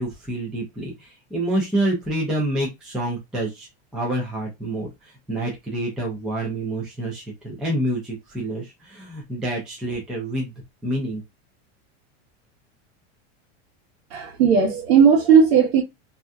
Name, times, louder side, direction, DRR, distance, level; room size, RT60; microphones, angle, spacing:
voice 1, 0.0-10.5 10.8-11.2, right 1 dB, ahead, 0.4 m, -27 dB
voice 2, 14.1-15.8, right 6 dB, 85° right, 1.1 m, -16 dB
2.7 x 2.2 x 3.4 m
supercardioid pair, 165°, 33 cm